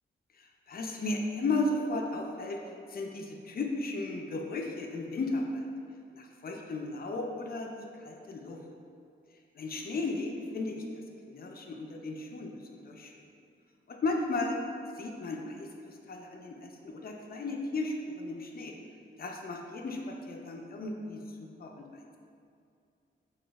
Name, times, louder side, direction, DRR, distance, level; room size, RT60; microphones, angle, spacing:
voice 1, 0.4-5.7 6.1-8.6 9.5-10.8 11.3-13.3 13.9-14.6 15.0-18.8 19.2-21.2 21.6-22.1, left 2 dB, 45° left, 2 dB, 0.4 m, -35 dB
6.0 x 2.3 x 2.3 m, 2.4 s
wide cardioid pair, 130°, 21 cm